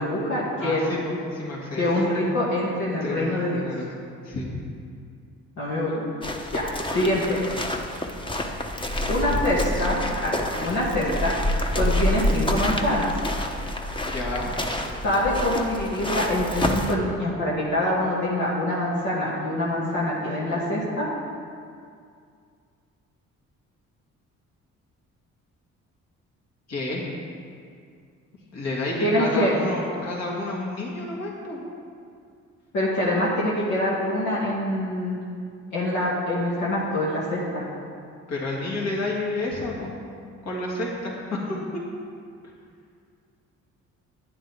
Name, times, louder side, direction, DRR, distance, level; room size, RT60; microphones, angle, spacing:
voice 1, 0.0-0.9 1.8-3.6 5.6-6.0 6.5-7.4 9.1-13.1 15.0-21.1 29.0-29.5 32.7-35.2 35.7-37.7, left 1 dB, 75° left, -7 dB, 2.3 m, -25 dB
voice 2, 0.6-2.1 2.9-3.9 4.2-4.5 14.1-14.5 26.7-27.0 28.5-31.6 38.3-40.0 40.4-41.6, left 2 dB, 60° left, -4 dB, 2.8 m, -30 dB
sound 1, 6.2-17.0, left 1 dB, 15° left, 1.0 m, -28 dB
11.5 x 9.9 x 3.7 m, 2.3 s
cardioid pair, 90°, 30 cm